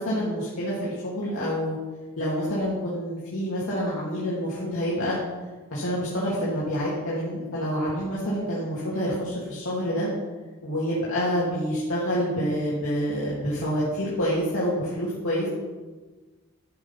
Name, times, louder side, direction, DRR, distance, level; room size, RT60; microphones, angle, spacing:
voice 1, 0.0-1.8 2.2-5.2 5.7-10.1 10.6-15.5, equal, 70° left, -8 dB, 2.6 m, -27 dB
12.0 x 6.3 x 5.8 m, 1.3 s
head